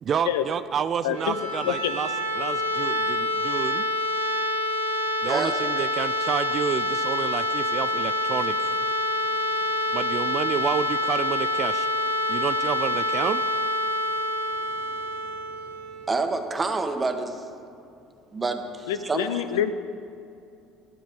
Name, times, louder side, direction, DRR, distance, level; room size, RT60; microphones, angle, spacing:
voice 1, 0.0-2.1 2.4-3.9 5.2-8.8 9.9-11.9 12.3-13.4, right 7 dB, 45° right, 12 dB, 0.3 m, -29 dB
voice 2, 1.0-1.4 1.6-2.0 18.9-19.7, left 10 dB, 80° left, 11 dB, 0.5 m, -26 dB
sound 1, 1.0-16.8, left 1 dB, 90° right, 1.0 m, -27 dB
voice 3, 5.3-5.6 16.1-17.4 18.3-19.4, right 3 dB, 25° right, 6 dB, 1.1 m, -28 dB
12.5 x 7.6 x 5.2 m, 2.6 s
hypercardioid pair, 70°, 0 cm